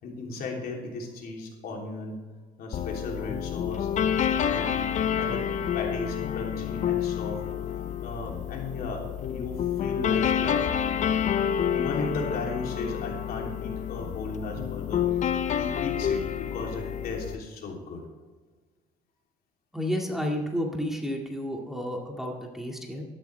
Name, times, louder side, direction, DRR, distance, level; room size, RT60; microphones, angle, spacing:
voice 1, 0.0-2.2 2.6-3.9 4.4-4.8 5.2-5.5 5.7-7.4 8.0-10.7 11.7-15.1 15.6-18.0, left 3 dB, 65° left, 0 dB, 3.2 m, -36 dB
sound 1, 2.7-17.4, left 9 dB, 45° left, 0.7 m, -28 dB
voice 2, 19.7-23.0, equal, ahead, 0 dB, 2.0 m, -31 dB
13.0 x 12.0 x 3.4 m, 1.4 s
cardioid pair, 110°, 17 cm